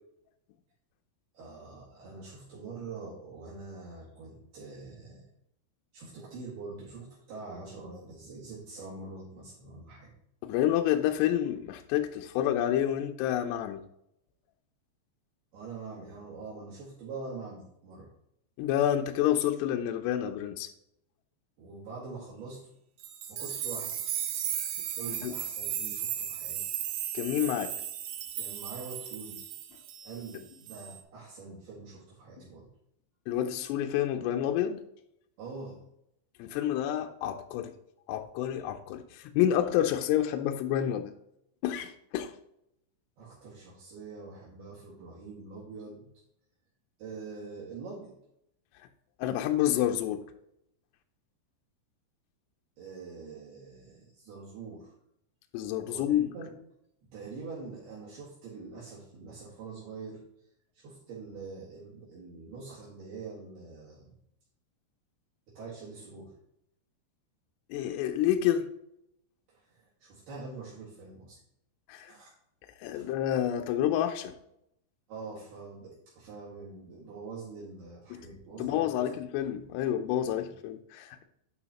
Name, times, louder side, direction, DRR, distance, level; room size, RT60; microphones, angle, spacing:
voice 1, 1.3-5.3 5.9-10.1 15.5-18.1 21.6-22.6 23.3-24.0 25.0-26.6 28.4-29.4 30.0-32.7 35.4-35.8 43.2-46.1 47.0-48.1 52.8-54.9 55.9-56.6 57.0-60.2 60.7-64.1 65.5-66.3 69.5-71.4 72.1-72.3 72.9-73.0 75.1-78.9 80.4-80.5, right 4 dB, 65° right, -7 dB, 3.5 m, -44 dB
voice 2, 10.4-13.8 18.6-20.7 25.1-25.3 27.1-27.7 33.3-34.8 36.4-37.7 38.1-41.1 41.6-42.3 49.2-50.2 55.5-56.3 67.7-68.7 71.9-72.1 72.8-74.3 78.1-78.2 78.6-81.2, left 11 dB, 85° left, 6 dB, 2.4 m, -29 dB
sound 1, 23.0-30.4 30.7-31.0, right 10 dB, 90° right, 2.1 m, -36 dB
11.0 x 5.0 x 2.9 m, 0.77 s
omnidirectional pair, 5.4 m